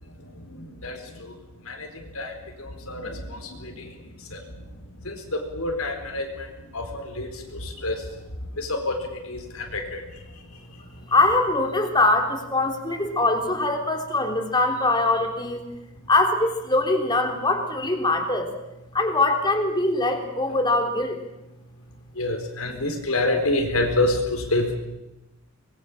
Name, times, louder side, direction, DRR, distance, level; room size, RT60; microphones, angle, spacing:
voice 1, 5.6-6.2 6.7-6.8 7.2-7.3 7.8-7.9 8.6-8.9 9.7-9.8 22.2-24.7, left 2 dB, 85° left, 3 dB, 4.3 m, -24 dB
voice 2, 11.1-15.6 16.1-18.5 18.9-21.2, left 2 dB, 20° left, 4 dB, 3.5 m, -22 dB
25.5 x 21.0 x 7.4 m, 0.96 s
head